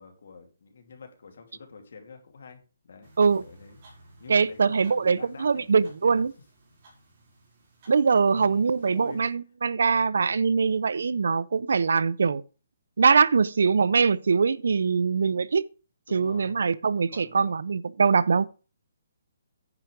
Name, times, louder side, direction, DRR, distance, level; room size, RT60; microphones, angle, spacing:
voice 1, 0.0-3.1 3.4-6.3 6.7-6.8 8.3-9.2 16.1-16.6 17.1-17.6, left 4 dB, 60° left, 2.7 m, -47 dB
sound 1, 3.0-9.3, right 1 dB, 30° right, 5.2 m, -57 dB
voice 2, 4.3-6.3 7.9-12.4 13.0-15.6 16.1-18.5, right 5 dB, 70° right, 0.6 m, -22 dB
9.8 x 5.9 x 5.1 m
hypercardioid pair, 175°, 0 cm